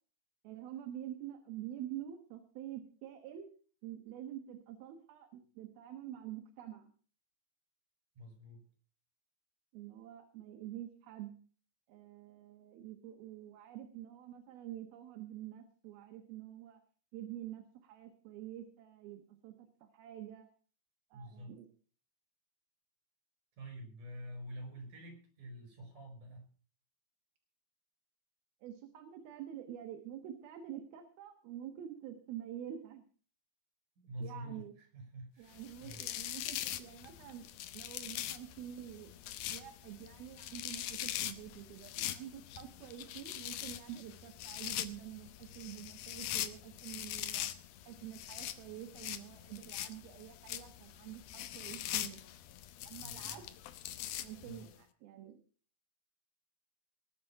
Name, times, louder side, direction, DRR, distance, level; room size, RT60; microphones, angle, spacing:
voice 1, 0.4-6.9 9.7-11.3 11.9-16.8 17.1-20.5 21.1-21.7 28.6-33.0 34.2-34.7 35.4-37.5 37.7-39.1 39.5-47.5 47.9-52.2 52.8-53.4 54.2-55.4, right 11 dB, 70° right, 6 dB, 3.0 m, -47 dB
voice 2, 8.2-8.6 21.1-21.5 23.6-26.5 34.0-36.0 53.0-53.4 54.4-54.7, equal, 50° right, 5 dB, 6.4 m, -48 dB
sound 1, 35.5-54.7, left 13 dB, 75° left, 2.6 m, -42 dB
19.5 x 8.0 x 5.7 m, 0.42 s
omnidirectional pair, 4.7 m